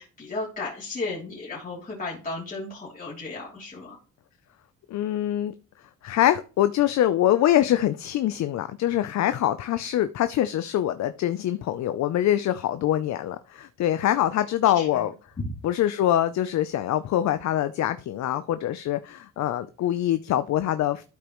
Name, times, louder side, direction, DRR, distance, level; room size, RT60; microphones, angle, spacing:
voice 1, 0.0-4.0 14.7-15.1 15.4-15.5, left 3 dB, 30° left, 3.1 m, -34 dB
voice 2, 4.9-5.5 6.0-15.1 15.6-21.0, left 12 dB, 65° left, 0.6 m, -24 dB
12.5 x 5.2 x 3.0 m
cardioid pair, 90°, 30 cm